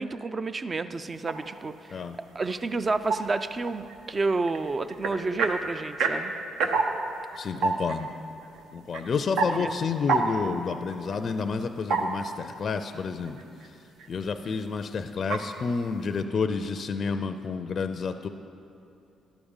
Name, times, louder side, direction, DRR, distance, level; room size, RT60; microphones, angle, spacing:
voice 1, 0.0-2.0 2.3-6.3 9.6-9.7, right 3 dB, 30° right, 12 dB, 0.3 m, -30 dB
sound 1, 1.3-1.6 1.9-12.7 12.9-13.7 14.0-14.5 15.2-15.5, right 4 dB, 85° right, 0.7 m, -30 dB
voice 2, 7.3-8.1 8.7-13.4 14.1-18.3, left 5 dB, 50° left, 8 dB, 0.4 m, -30 dB
11.5 x 5.0 x 7.1 m, 2.8 s
cardioid pair, 90°, 0 cm